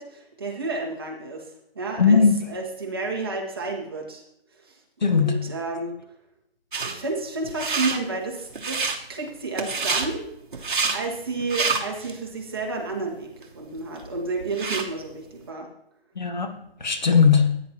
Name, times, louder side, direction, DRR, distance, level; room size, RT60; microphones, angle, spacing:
voice 1, 0.0-4.2 4.5-4.8 5.1-5.9 6.8-10.3 10.5-15.7, right 3 dB, 25° right, 1.2 m, -31 dB
voice 2, 2.0-2.4 5.0-5.5 16.2-17.6, left 5 dB, 45° left, 0.9 m, -19 dB
sound 1, 6.7-7.0 7.4-8.0 8.5-9.0 9.6-10.1 10.5-11.0 11.4-12.1 12.6-12.7 13.4-13.5 13.8-14.9, right 4 dB, 55° right, 1.2 m, -27 dB
15.5 x 9.2 x 2.8 m
hypercardioid pair, 175°, 31 cm